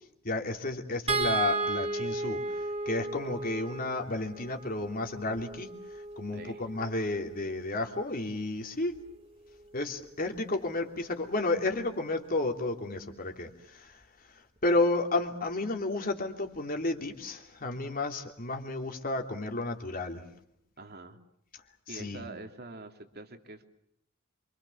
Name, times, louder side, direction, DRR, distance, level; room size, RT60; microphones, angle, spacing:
voice 1, 0.2-8.9 9.7-14.0 14.6-20.2 21.9-22.3, left 2 dB, 45° left, 4 dB, 3.1 m, -32 dB
sound 1, 1.1-7.4 8.9-9.1 9.5-9.6, right 3 dB, 30° right, 2.5 m, -34 dB
voice 2, 6.3-6.7 20.8-21.2 21.9-23.7, right 2 dB, 50° right, 6 dB, 2.9 m, -45 dB
27.5 x 25.5 x 7.2 m, 0.75 s
head